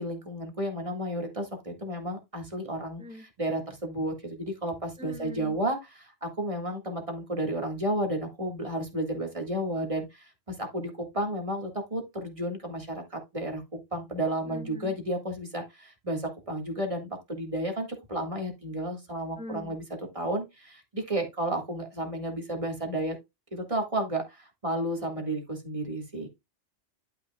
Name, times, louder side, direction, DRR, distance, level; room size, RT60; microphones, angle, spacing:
voice 1, 0.0-19.8 20.1-23.2 23.5-26.3, right 1 dB, 25° right, 1.8 m, -32 dB
voice 2, 5.0-5.5 14.4-14.9 19.4-19.7, equal, 5° right, 0.9 m, -42 dB
11.0 x 5.7 x 2.3 m
omnidirectional pair, 1.3 m